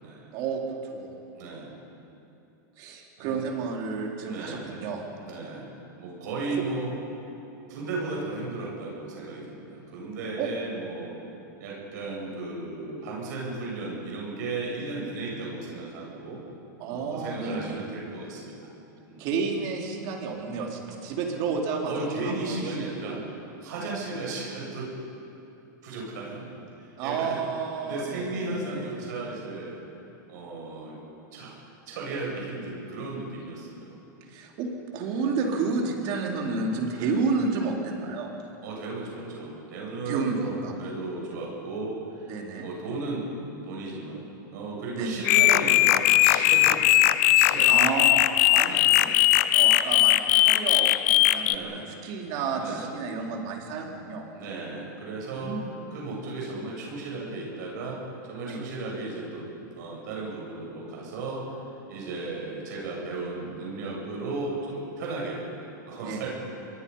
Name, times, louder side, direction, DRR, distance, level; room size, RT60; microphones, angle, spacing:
voice 1, 0.3-1.2 2.8-5.0 6.5-6.6 10.4-10.5 16.8-17.9 19.2-21.9 22.2-22.6 23.1-23.2 27.0-29.1 33.4-33.5 34.3-38.3 40.0-40.7 42.3-42.7 45.0-45.1 47.6-48.2 48.5-49.2 49.5-54.3 55.4-55.6 58.5-58.6 66.0-66.3, right 4 dB, 45° right, 0 dB, 4.0 m, -31 dB
voice 2, 1.3-1.7 3.2-3.4 4.3-4.7 5.2-5.7 6.0-6.9 7.7-11.1 11.6-16.4 16.9-18.7 19.1-19.2 21.9-23.2 23.6-24.9 25.8-26.4 26.8-27.4 27.8-29.8 30.3-30.9 31.3-31.6 31.9-34.0 36.9-37.2 38.6-42.3 42.6-43.3 43.6-44.2 44.5-47.7 48.6-48.9 51.4-51.8 52.6-52.9 54.3-55.5 55.9-58.0 58.2-59.5 59.8-61.5 61.9-65.4 65.9-66.3, right 3 dB, 65° right, -3 dB, 7.9 m, -35 dB
sound 1, 45.2-51.5, left 15 dB, 50° left, 0.7 m, -20 dB
27.0 x 22.5 x 5.7 m, 2.8 s
supercardioid pair, 150°, 10 cm